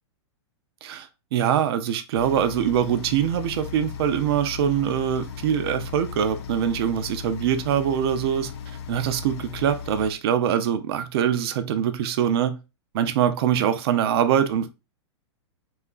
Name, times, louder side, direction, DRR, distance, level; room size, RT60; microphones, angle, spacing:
voice 1, 0.8-8.5 8.9-12.6 12.9-14.7, right 9 dB, 55° right, 0.4 m, -23 dB
sound 1, 2.1-10.1, left 7 dB, 60° left, 0.5 m, -37 dB
2.8 x 2.3 x 2.2 m
hypercardioid pair, 135°, 15 cm